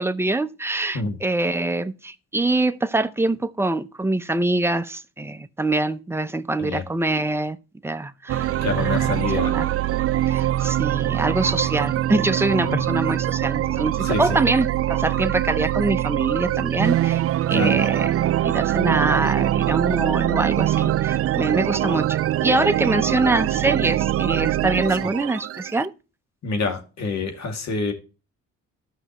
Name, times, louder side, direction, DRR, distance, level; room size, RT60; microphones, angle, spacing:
voice 1, 0.0-7.6 7.8-8.5 8.8-9.7 10.3-17.2 17.5-18.1 18.4-25.9, right 2 dB, 10° right, 0.7 m, -24 dB
sound 1, 8.3-25.8, right 13 dB, 50° right, 0.4 m, -23 dB
voice 2, 8.6-9.5 12.6-12.8 14.0-14.4 17.5-17.7 26.4-27.9, left 4 dB, 65° left, 2.3 m, -27 dB
14.5 x 5.6 x 3.0 m
cardioid pair, 90°, 30 cm